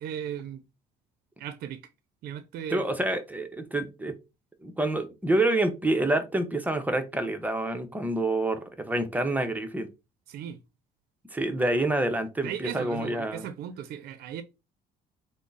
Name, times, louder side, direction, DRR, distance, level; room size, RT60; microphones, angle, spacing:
voice 1, 0.0-0.6 1.4-1.8 2.2-2.8 10.3-10.6 12.4-14.4, right 9 dB, 65° right, 0.4 m, -36 dB
voice 2, 2.7-4.2 4.6-9.9 11.3-13.4, right 1 dB, 10° right, 0.6 m, -27 dB
3.5 x 2.0 x 3.9 m
cardioid pair, 110°, 17 cm